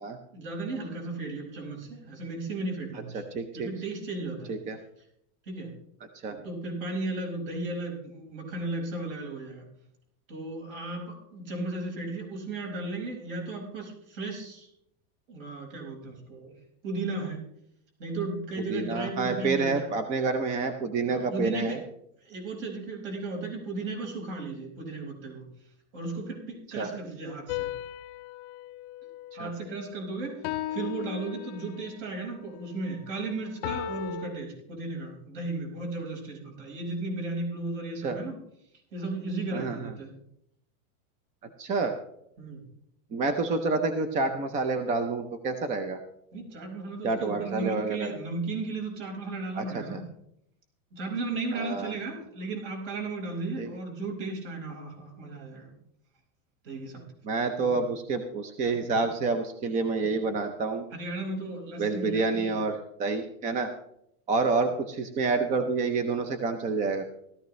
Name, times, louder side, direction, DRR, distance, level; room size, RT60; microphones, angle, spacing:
voice 1, 0.3-3.2 3.5-4.5 5.5-5.7 6.3-9.7 10.3-14.7 15.3-16.5 16.8-17.4 18.0-20.0 21.1-21.8 22.3-25.5 25.9-27.7 29.3-38.3 38.9-40.1 42.4-42.6 46.3-50.1 50.9-55.8 56.6-57.0 57.6-57.9 60.9-62.6, right 3 dB, 55° right, 1 dB, 5.2 m, -35 dB
voice 2, 3.1-3.7 4.5-4.8 6.2-6.4 18.7-21.8 26.8-26.9 29.4-29.5 38.0-38.2 39.5-39.9 41.6-42.0 43.1-46.0 47.0-48.1 49.6-50.0 51.5-51.9 53.6-53.8 57.2-60.9 61.8-63.7 64.3-67.1, right 4 dB, 15° right, 8 dB, 0.6 m, -28 dB
sound 1, 27.5-29.9 30.4-32.0 33.6-34.3, left 11 dB, 45° left, 0.8 m, -36 dB
17.5 x 13.5 x 3.1 m, 0.73 s
supercardioid pair, 160°, 44 cm